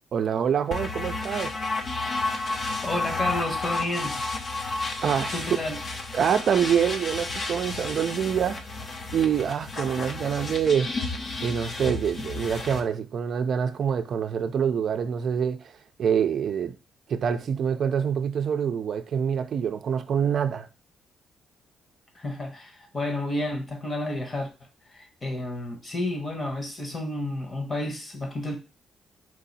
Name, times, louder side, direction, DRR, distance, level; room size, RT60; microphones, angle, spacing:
voice 1, 0.1-1.5 5.0-5.4 6.1-15.7 16.0-16.8 17.1-20.7, right 7 dB, 60° right, 0.5 m, -26 dB
sound 1, 0.7-12.8, left 3 dB, 45° left, 0.8 m, -32 dB
voice 2, 2.8-4.2 5.3-5.8 22.1-24.5 24.9-28.6, left 1 dB, 30° left, 1.2 m, -31 dB
4.6 x 2.7 x 4.1 m
cardioid pair, 90°, 0 cm